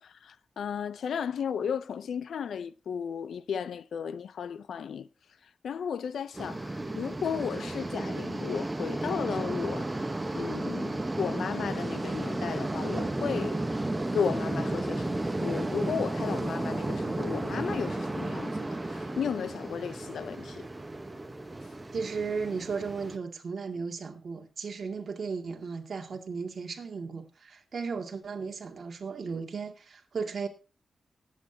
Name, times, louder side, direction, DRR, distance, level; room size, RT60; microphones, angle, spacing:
voice 1, 0.0-5.1 5.6-13.6 14.1-20.7, left 7 dB, 80° left, 0.6 m, -34 dB
sound 1, 6.3-23.2, right 2 dB, 15° right, 1.0 m, -33 dB
voice 2, 21.9-30.5, right 5 dB, 50° right, 2.1 m, -35 dB
19.0 x 8.7 x 2.8 m
wide cardioid pair, 110°, 0 cm